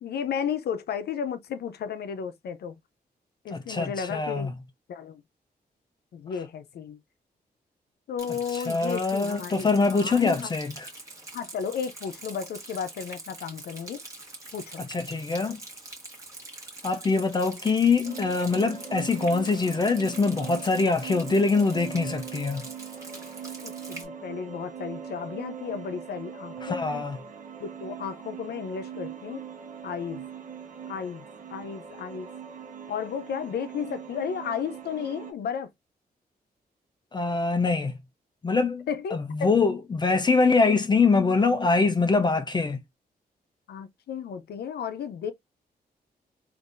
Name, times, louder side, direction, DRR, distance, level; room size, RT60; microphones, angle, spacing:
voice 1, 0.0-2.8 3.4-4.5 4.9-5.2 6.1-7.0 8.1-10.5 11.3-14.0 14.5-14.8 23.6-27.0 27.6-29.4 29.8-30.2 30.9-31.3 31.5-32.3 32.9-35.7 38.9-39.5 43.7-45.3, left 7 dB, 85° left, 0.6 m, -33 dB
voice 2, 3.5-4.5 8.5-10.9 14.8-15.6 16.8-22.7 26.6-27.2 37.1-37.9 38.4-42.8, left 4 dB, 25° left, 0.4 m, -24 dB
Rain, 8.2-24.1, right 2 dB, 20° right, 1.3 m, -44 dB
sound 1, 18.0-35.3, right 7 dB, 50° right, 0.8 m, -41 dB
3.8 x 2.6 x 2.5 m
wide cardioid pair, 130°, 16 cm